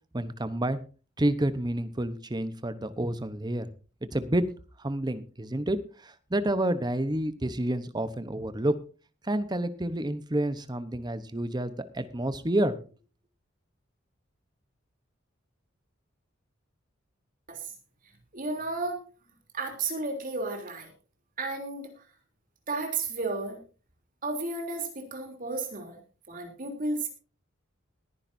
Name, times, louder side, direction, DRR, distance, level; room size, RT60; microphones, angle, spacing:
voice 1, 0.1-0.8 1.2-3.7 4.1-4.5 4.8-8.8 9.2-12.8, right 1 dB, 20° right, 12 dB, 0.9 m, -29 dB
voice 2, 18.3-19.0 19.5-20.9 21.4-22.1 22.7-23.6 24.2-26.0 26.3-27.1, right 3 dB, 45° right, 3 dB, 3.4 m, -33 dB
20.5 x 10.5 x 2.7 m, 0.36 s
head